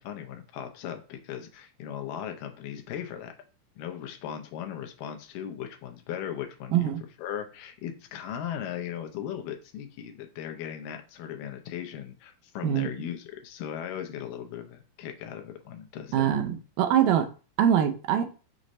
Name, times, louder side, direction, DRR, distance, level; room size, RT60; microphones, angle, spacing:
voice 1, 0.0-3.3 3.8-6.9 7.2-16.4, left 9 dB, 85° left, 5 dB, 2.3 m, -38 dB
voice 2, 16.1-17.3 17.6-18.3, right 10 dB, 85° right, 6 dB, 2.3 m, -23 dB
6.3 x 2.6 x 3.0 m, 0.34 s
omnidirectional pair, 3.8 m